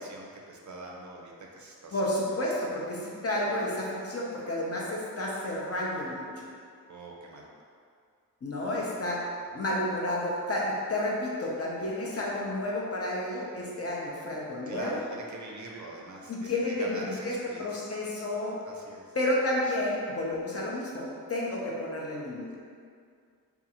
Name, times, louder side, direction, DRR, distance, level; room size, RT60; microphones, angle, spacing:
voice 1, 0.0-2.0 2.3-2.7 6.9-7.5 14.7-17.8 18.7-19.2, right 2 dB, 55° right, -1 dB, 0.4 m, -43 dB
voice 2, 1.9-6.3 8.4-15.0 16.3-18.6 19.1-22.5, left 1 dB, 40° left, -4 dB, 0.6 m, -31 dB
2.5 x 2.4 x 2.8 m, 2.2 s
wide cardioid pair, 70°, 36 cm